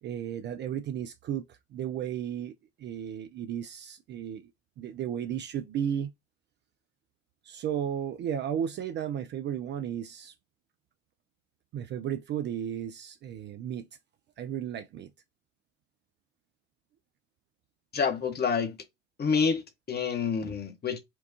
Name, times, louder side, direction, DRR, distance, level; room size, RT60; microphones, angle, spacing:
voice 1, 0.0-4.5 4.8-6.1 7.4-10.3 11.7-13.9 14.4-15.1, right 9 dB, 35° right, 0.4 m, -34 dB
voice 2, 17.9-18.8 19.2-21.0, left 6 dB, 30° left, 1.0 m, -28 dB
4.4 x 2.3 x 2.8 m
figure-of-eight pair, 55°, 34 cm